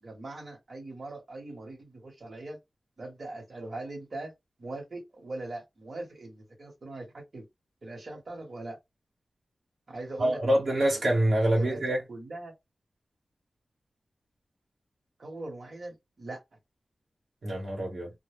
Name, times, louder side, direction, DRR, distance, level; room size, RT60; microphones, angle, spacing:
voice 1, 0.0-2.6 3.0-4.3 4.6-7.4 7.8-8.8 9.9-10.6 10.9-11.0 11.4-11.8 12.1-12.5 15.2-16.4, right 2 dB, 60° right, 1.1 m, -41 dB
voice 2, 10.2-12.0 17.4-18.1, right 1 dB, 80° right, 1.1 m, -25 dB
2.2 x 2.0 x 3.3 m
wide cardioid pair, 115°, 0 cm